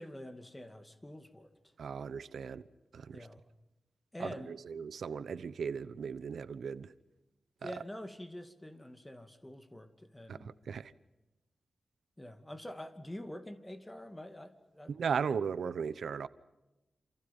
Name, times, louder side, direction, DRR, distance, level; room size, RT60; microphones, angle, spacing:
voice 1, 0.0-1.7 3.1-3.4 4.1-4.6 7.6-10.5 12.2-15.2, left 1 dB, 10° left, 2.4 m, -46 dB
voice 2, 1.8-2.6 2.9-3.3 4.2-6.9 7.6-7.8 10.3-10.9 14.9-16.3, right 6 dB, 90° right, 0.9 m, -37 dB
28.5 x 28.0 x 5.5 m
wide cardioid pair, 125°, 0 cm